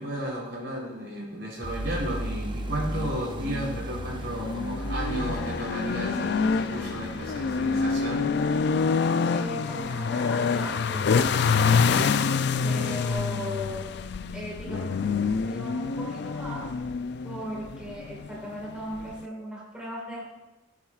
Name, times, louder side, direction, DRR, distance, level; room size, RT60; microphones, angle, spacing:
voice 1, 0.0-8.2, right 1 dB, 70° right, -4 dB, 3.6 m, -33 dB
sound 1, 1.6-9.9, right 1 dB, 25° right, 0.6 m, -37 dB
sound 2, 2.6-19.3, left 5 dB, 60° left, 0.4 m, -27 dB
voice 2, 9.3-14.0 14.3-16.7 17.2-20.2, equal, 5° right, -4 dB, 1.8 m, -38 dB
16.5 x 7.3 x 2.4 m, 1.0 s
head